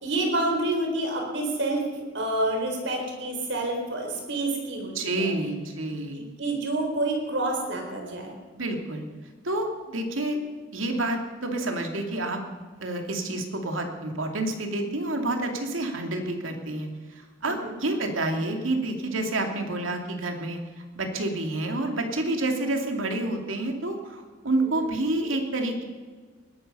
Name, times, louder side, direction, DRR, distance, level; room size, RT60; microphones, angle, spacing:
voice 1, 0.0-1.8 2.1-5.3 6.2-8.4 17.4-17.7 24.6-24.8, right 2 dB, 65° right, 2 dB, 4.1 m, -28 dB
voice 2, 4.9-6.2 8.5-9.0 9.4-10.4 10.7-12.4 12.8-16.9 17.4-20.6 20.9-25.8, right 2 dB, 90° right, 3 dB, 2.6 m, -28 dB
20.5 x 12.5 x 5.6 m, 1.5 s
head